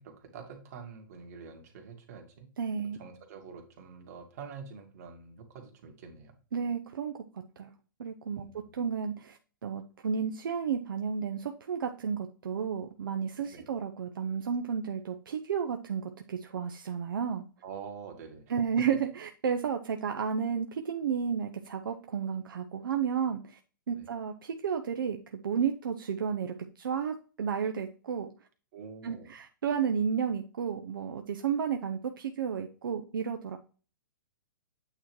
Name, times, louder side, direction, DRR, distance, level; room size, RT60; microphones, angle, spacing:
voice 1, 0.0-2.5 3.0-6.3 8.4-8.7 13.5-13.7 17.6-18.5 23.9-24.1 28.7-29.3, right 6 dB, 50° right, 3 dB, 1.9 m, -46 dB
voice 2, 2.6-3.0 6.5-7.1 7.6-7.7 8.0-17.4 18.5-23.6 23.9-28.3 29.0-33.6, right 7 dB, 75° right, 5 dB, 0.7 m, -32 dB
8.8 x 3.0 x 4.6 m, 0.37 s
hypercardioid pair, 140°, 11 cm